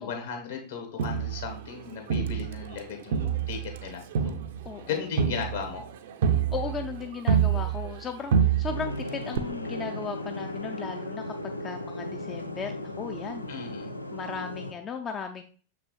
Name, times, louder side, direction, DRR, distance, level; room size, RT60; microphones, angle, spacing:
voice 1, 0.0-4.3 4.9-5.8 13.5-13.9, left 6 dB, 60° left, 2 dB, 2.0 m, -36 dB
Crowd, 1.0-2.8 3.1-8.0 8.3-9.0 9.4-9.5, right 7 dB, 55° right, 0.5 m, -27 dB
voice 2, 6.5-13.5 14.1-15.4, left 6 dB, 25° left, 5 dB, 0.5 m, -36 dB
sound 1, 8.7-14.7, left 1 dB, 85° left, 0.5 m, -36 dB
6.7 x 5.8 x 2.4 m, 0.39 s
figure-of-eight pair, 90°, 0 cm